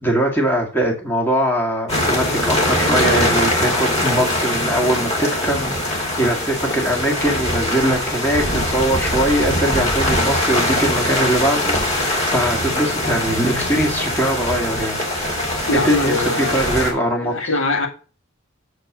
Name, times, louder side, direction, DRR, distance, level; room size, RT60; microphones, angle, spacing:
voice 1, 0.0-14.9 15.7-17.5, right 1 dB, 10° left, 1.9 m, -21 dB
sound 1, 1.9-16.9, left 1 dB, 30° left, 2.8 m, -22 dB
voice 2, 15.7-17.9, left 2 dB, 80° left, 2.0 m, -23 dB
8.1 x 4.5 x 5.9 m
head